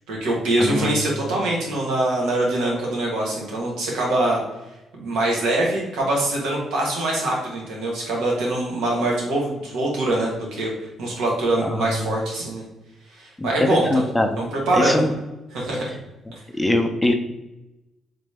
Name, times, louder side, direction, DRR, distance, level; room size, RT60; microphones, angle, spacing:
voice 1, 0.1-4.4 4.9-10.7 11.0-12.6 13.2-14.1 14.4-15.0 15.5-15.9, right 1 dB, 90° right, -2 dB, 1.4 m, -23 dB
voice 2, 0.6-0.9 11.6-12.1 13.4-13.5 13.9-14.3 14.7-15.1 16.6-17.1, left 1 dB, 10° left, 4 dB, 0.5 m, -22 dB
3.9 x 3.2 x 3.4 m, 0.97 s
cardioid pair, 90°, 0 cm